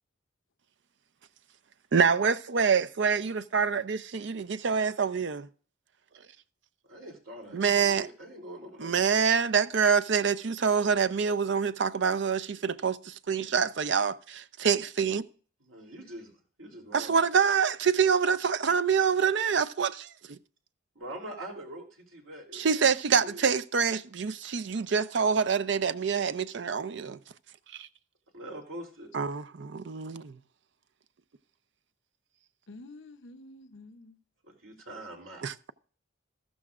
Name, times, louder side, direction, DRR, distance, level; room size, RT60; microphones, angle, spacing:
voice 1, 1.9-5.5 7.5-8.1 8.8-15.2 16.9-20.4 22.5-27.2 27.8-27.9 29.1-30.4 35.4-35.7, right 6 dB, 60° right, 0.5 m, -26 dB
voice 2, 6.8-9.0 15.6-16.3 16.6-17.2 20.9-22.8 23.1-23.4 28.3-29.1 34.4-35.5, right 1 dB, 85° right, 3.1 m, -43 dB
voice 3, 32.7-34.1, left 2 dB, 65° left, 0.8 m, -48 dB
14.0 x 12.5 x 2.4 m
head